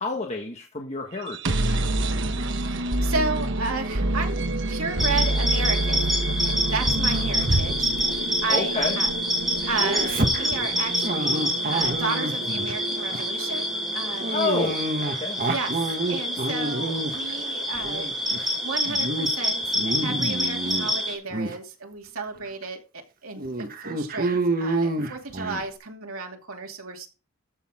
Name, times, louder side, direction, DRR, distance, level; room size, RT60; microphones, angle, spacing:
voice 1, 0.0-1.8 8.5-9.0 14.3-15.4, left 3 dB, 30° left, 2 dB, 1.4 m, -29 dB
sound 1, 1.2-15.0, right 1 dB, 60° right, 1.2 m, -29 dB
voice 2, 2.4-9.1 9.7-14.4 15.4-18.1 18.4-22.8 23.2-27.1, right 4 dB, 80° right, 2 dB, 2.7 m, -33 dB
sound 2, 5.0-21.2, equal, ahead, 4.1 m, -27 dB
Dog, 6.8-9.1 9.4-12.7 13.1-13.4 14.2-17.3 17.7-18.5 18.9-19.3 19.6-20.9 21.3-21.6 22.2-22.3 22.6-22.7 23.4-25.7, right 2 dB, 45° right, 1.5 m, -28 dB
14.0 x 6.8 x 3.7 m, 0.33 s
head